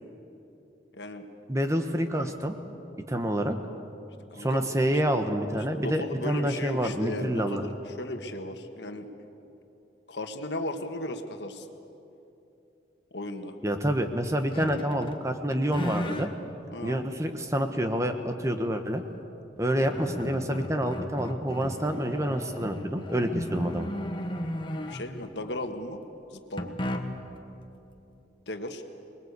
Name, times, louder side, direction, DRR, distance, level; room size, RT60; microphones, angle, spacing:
voice 1, 0.9-1.3 2.1-2.2 4.3-4.7 5.8-9.1 10.1-11.7 13.1-13.5 16.7-17.0 24.9-26.0 26.3-26.8 28.5-28.8, left 1 dB, 75° left, 6 dB, 1.6 m, -36 dB
voice 2, 1.5-2.5 3.1-3.6 4.4-7.6 13.6-16.3 16.8-19.0 19.6-23.9, equal, 15° right, 6 dB, 1.2 m, -28 dB
sound 1, 14.5-15.2 15.5-16.3 17.0-17.1 19.2-19.3 19.6-25.3 26.6-27.4, equal, 25° left, 1.4 m, -35 dB
24.0 x 21.0 x 8.3 m, 2.9 s
head